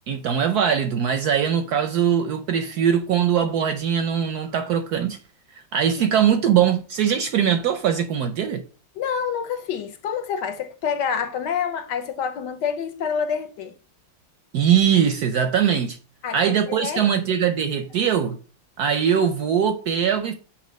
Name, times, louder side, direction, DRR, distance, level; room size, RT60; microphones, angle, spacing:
voice 1, 0.1-5.2 5.7-8.6 14.5-16.0 16.3-18.4 18.8-20.3, right 8 dB, 70° right, 0.9 m, -21 dB
voice 2, 9.0-13.7 16.2-17.0, left 7 dB, 70° left, 1.2 m, -27 dB
7.4 x 2.8 x 5.1 m
omnidirectional pair, 2.1 m